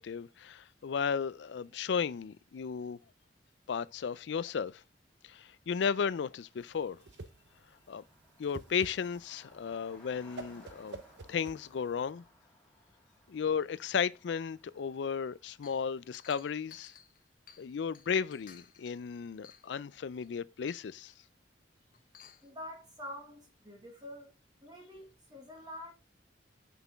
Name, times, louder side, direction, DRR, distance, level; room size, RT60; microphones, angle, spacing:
voice 1, 0.0-3.0 3.7-4.8 5.2-7.0 7.9-8.0 8.4-11.0 11.3-12.2 13.3-16.9 17.6-21.1, left 6 dB, 75° left, 0.4 m, -34 dB
Car passing by, 5.1-5.2 5.4-16.4, left 1 dB, 5° left, 1.9 m, -63 dB
Whoosh swoosh swish, 6.6-12.1, right 3 dB, 70° right, 0.7 m, -49 dB
Chink clink, 15.6-17.7 17.9-19.0 19.4-19.8 20.2-20.3 20.7-21.2 21.9-22.5, left 8 dB, 50° left, 0.8 m, -55 dB
voice 2, 22.4-24.3 24.6-25.9, left 1 dB, 20° right, 1.5 m, -46 dB
5.9 x 5.6 x 3.5 m
head